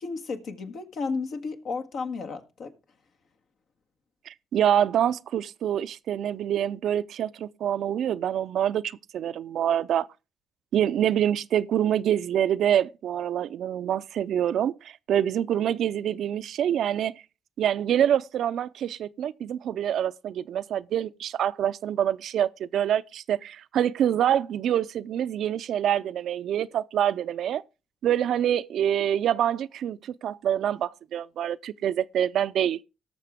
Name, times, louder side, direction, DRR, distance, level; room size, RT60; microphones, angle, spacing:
voice 1, 0.0-2.7, left 4 dB, 70° left, 1.6 m, -33 dB
voice 2, 4.3-10.1 10.7-17.1 17.6-27.6 28.0-32.8, right 10 dB, 70° right, 0.5 m, -26 dB
18.0 x 6.6 x 3.5 m
supercardioid pair, 60°, 0 cm